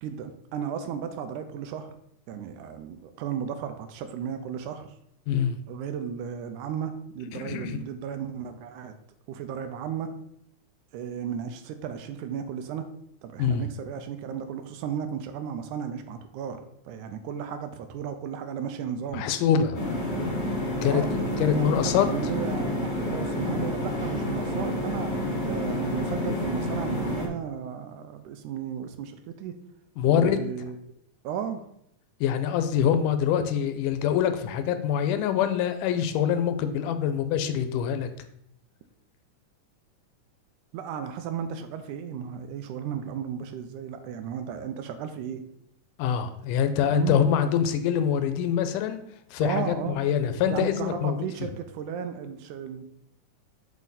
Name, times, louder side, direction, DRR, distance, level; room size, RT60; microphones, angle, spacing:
voice 1, 0.0-1.9 2.3-4.9 5.7-8.9 9.3-10.1 10.9-12.9 13.2-19.3 20.8-29.6 30.1-30.8 31.2-31.7 40.7-45.4 46.9-47.2 49.4-50.0 50.5-52.8, right 8 dB, 80° right, 8 dB, 2.0 m, -34 dB
voice 2, 5.3-5.6 7.3-7.8 13.4-13.6 19.1-19.8 20.8-21.0 21.4-22.1 30.0-30.4 32.2-38.1 46.0-49.0 49.3-51.5, left 8 dB, 85° left, 9 dB, 2.1 m, -25 dB
sound 1, 19.7-27.3, left 1 dB, 50° left, 0.5 m, -29 dB
7.3 x 4.3 x 4.0 m, 0.74 s
omnidirectional pair, 3.7 m